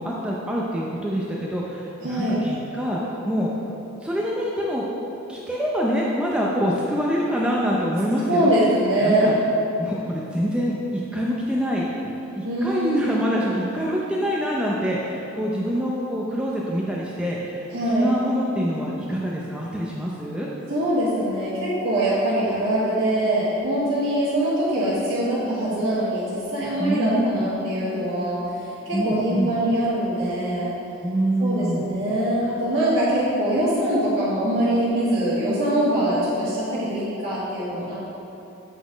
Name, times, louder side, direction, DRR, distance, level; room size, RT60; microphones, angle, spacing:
voice 1, 0.0-3.5 4.0-4.9 5.3-8.5 9.0-9.3 9.8-20.5 26.8-27.5 28.9-29.5 31.0-31.9, equal, 5° right, -5 dB, 0.5 m, -25 dB
voice 2, 2.0-2.4 8.3-9.3 12.4-13.3 17.7-18.1 20.7-30.7 31.4-38.0, right 1 dB, 65° right, -11 dB, 1.6 m, -23 dB
8.1 x 4.1 x 5.0 m, 2.9 s
head